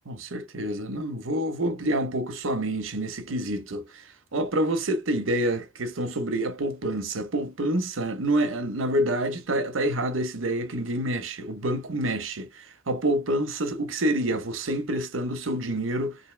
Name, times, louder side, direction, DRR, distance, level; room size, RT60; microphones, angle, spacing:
voice 1, 0.1-4.0 4.3-16.2, right 1 dB, 90° right, 0.8 m, -27 dB
3.5 x 2.7 x 3.2 m
head